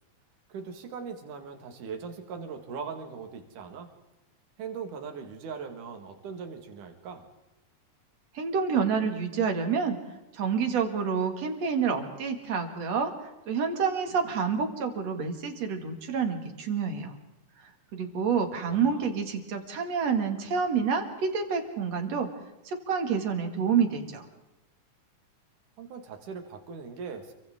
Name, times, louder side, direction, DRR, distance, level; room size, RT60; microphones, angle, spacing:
voice 1, 0.5-3.9 4.6-7.2 18.7-19.1 25.8-27.3, right 6 dB, 80° right, 5 dB, 3.4 m, -40 dB
voice 2, 8.3-10.0 10.3-17.1 17.6-22.3 22.6-24.2, right 6 dB, 55° right, 4 dB, 3.2 m, -28 dB
29.5 x 24.0 x 3.7 m, 0.99 s
omnidirectional pair, 3.6 m